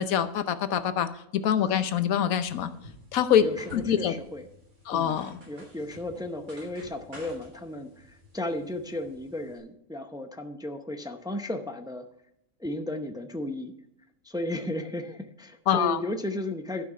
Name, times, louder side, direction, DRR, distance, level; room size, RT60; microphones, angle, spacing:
voice 1, 0.0-2.7 3.1-3.4 3.7-4.1 4.9-5.4 15.7-16.0, left 9 dB, 80° left, 11 dB, 1.2 m, -25 dB
sound 1, 2.4-9.6, left 1 dB, 80° right, 3.8 m, -51 dB
voice 2, 3.4-4.5 4.9-12.1 12.6-13.7 14.2-16.8, left 1 dB, 5° right, 6 dB, 0.4 m, -34 dB
11.5 x 6.1 x 5.3 m, 0.78 s
omnidirectional pair, 1.4 m